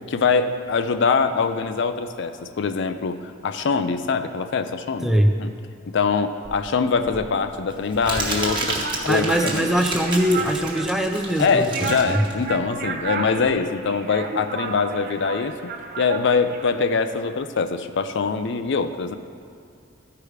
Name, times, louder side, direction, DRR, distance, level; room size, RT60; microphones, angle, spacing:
voice 1, 0.1-5.1 5.4-5.5 5.9-9.7 11.4-15.7 16.0-19.2, left 5 dB, 60° left, 9 dB, 0.4 m, -23 dB
Crumpling crinkling, 6.4-13.5, right 2 dB, 25° right, 1.3 m, -31 dB
sound 1, 8.2-17.3, right 4 dB, 50° right, 0.6 m, -33 dB
voice 2, 9.1-12.2, equal, ahead, 4 dB, 0.5 m, -22 dB
13.5 x 4.8 x 4.9 m, 2.4 s
head